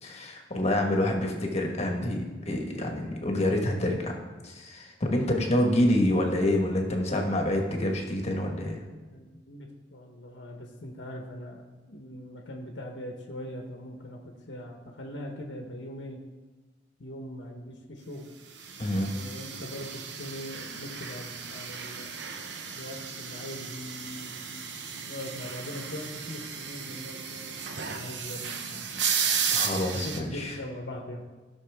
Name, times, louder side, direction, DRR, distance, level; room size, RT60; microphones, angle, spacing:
voice 1, 0.0-4.1 4.4-8.8 18.8-19.1 29.5-30.6, left 1 dB, 35° left, 1 dB, 1.5 m, -27 dB
voice 2, 0.9-1.5 9.1-11.6 11.9-14.2 14.5-16.2 17.0-18.3 19.0-22.2 22.7-28.9 29.9-31.2, left 1 dB, 90° left, 1 dB, 1.1 m, -41 dB
sound 1, 18.6-30.2, right 6 dB, 75° right, 0.9 m, -34 dB
15.5 x 6.3 x 3.6 m, 1.3 s
head